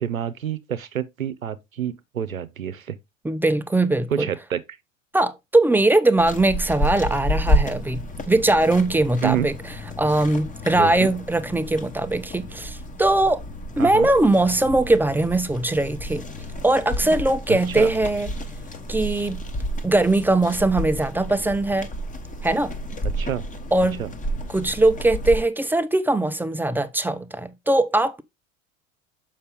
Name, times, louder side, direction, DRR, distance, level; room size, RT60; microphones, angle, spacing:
voice 1, 0.0-3.0 4.1-4.6 9.2-9.5 10.7-11.1 13.8-14.1 17.5-17.9 23.0-23.4 23.8-24.1, right 9 dB, 85° right, 0.7 m, -28 dB
voice 2, 3.2-4.3 5.1-9.5 10.0-13.4 13.8-16.2 16.6-18.3 18.9-19.4 19.8-21.9 22.4-22.7 23.7-24.0 24.5-28.2, right 2 dB, 5° right, 0.5 m, -21 dB
sound 1, 6.2-25.4, equal, 20° left, 1.3 m, -30 dB
6.6 x 5.6 x 3.5 m
figure-of-eight pair, 70°, 40 cm